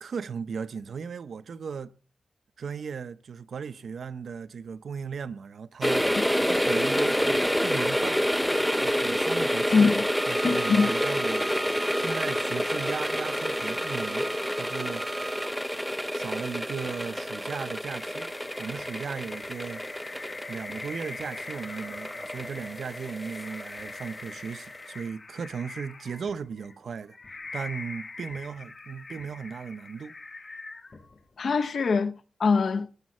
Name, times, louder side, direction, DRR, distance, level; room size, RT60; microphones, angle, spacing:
voice 1, 0.0-1.9 2.6-6.1 6.4-8.2 8.8-9.9 10.3-11.6 11.9-15.1 16.1-18.3 18.6-19.8 20.5-27.2 27.5-30.1, right 6 dB, 80° right, 0.6 m, -36 dB
sound 1, 5.8-24.5 24.8-24.9, equal, ahead, 0.5 m, -28 dB
voice 2, 9.7-10.0 10.4-10.9 31.4-32.9, left 4 dB, 70° left, 0.7 m, -23 dB
Bowed string instrument, 10.0-15.6, right 3 dB, 45° right, 0.7 m, -39 dB
sound 2, 17.8-31.4, left 3 dB, 45° left, 2.1 m, -43 dB
18.5 x 7.2 x 4.3 m
wide cardioid pair, 105°, 0 cm